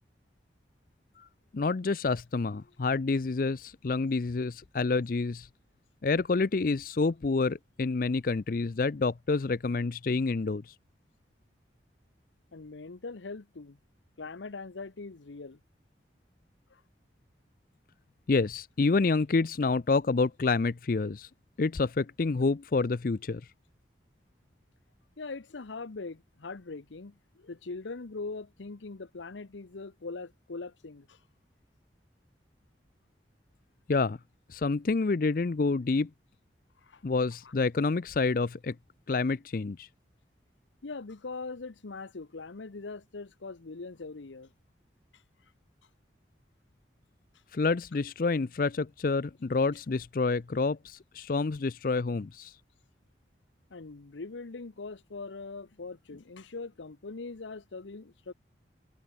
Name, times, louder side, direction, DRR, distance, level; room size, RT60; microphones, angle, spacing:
voice 1, 1.5-5.5 6.0-10.7 18.3-21.3 21.6-23.4 33.9-34.2 34.5-36.1 37.0-38.8 39.1-39.9 47.5-52.5, left 3 dB, 50° left, 0.5 m, -28 dB
voice 2, 12.5-13.8 14.2-15.6 16.7-16.8 25.2-31.2 36.8-37.0 37.4-37.5 40.8-44.5 53.7-58.3, left 3 dB, 85° left, 0.8 m, -41 dB
head